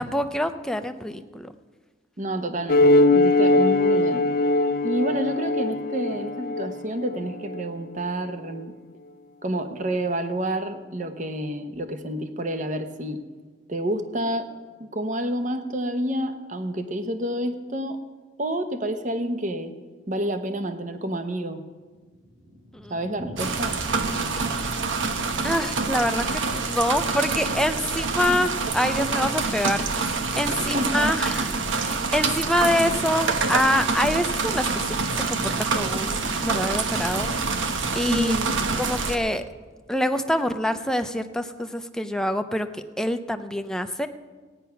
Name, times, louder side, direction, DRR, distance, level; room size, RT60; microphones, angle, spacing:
voice 1, 0.0-1.5 22.7-23.0 25.4-37.3 37.9-38.3 38.8-39.4 39.9-42.7 43.0-44.1, left 1 dB, 5° left, 8 dB, 0.5 m, -26 dB
voice 2, 2.2-4.3 4.8-8.7 9.4-13.2 13.7-14.5 14.8-18.0 18.4-19.7 20.1-21.6 22.9-23.7 28.3-28.5 30.7-31.2 38.1-38.5, right 1 dB, 40° right, 8 dB, 0.9 m, -29 dB
sound 1, 2.7-7.6, left 2 dB, 50° left, 0.5 m, -21 dB
Thunder, 21.6-27.6 27.8-27.9 28.2-28.3 28.5-28.6 29.2-29.5, equal, 65° right, 5.1 m, -44 dB
sound 2, 23.4-39.2, right 4 dB, 85° right, 1.0 m, -26 dB
16.5 x 9.5 x 5.7 m, 1.4 s
head